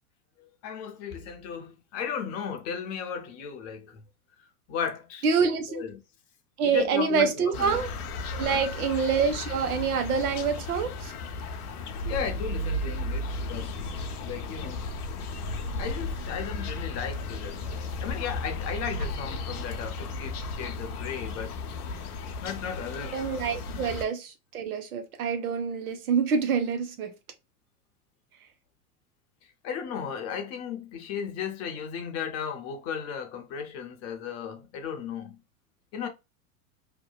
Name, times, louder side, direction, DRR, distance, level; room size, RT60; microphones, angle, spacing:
voice 1, 0.4-4.0 4.7-6.0 6.6-7.8 8.4-8.7 12.0-13.8 14.2-14.8 15.8-21.5 22.4-23.2 23.7-23.9 29.6-35.4 35.9-36.1, left 7 dB, 35° left, 0.6 m, -35 dB
voice 2, 5.2-5.8 6.6-7.9 8.3-11.1 23.1-27.1, right 6 dB, 75° right, 0.7 m, -26 dB
sound 1, 7.5-24.0, left 2 dB, 80° left, 0.6 m, -34 dB
2.7 x 2.1 x 2.2 m
hypercardioid pair, 100°, 44 cm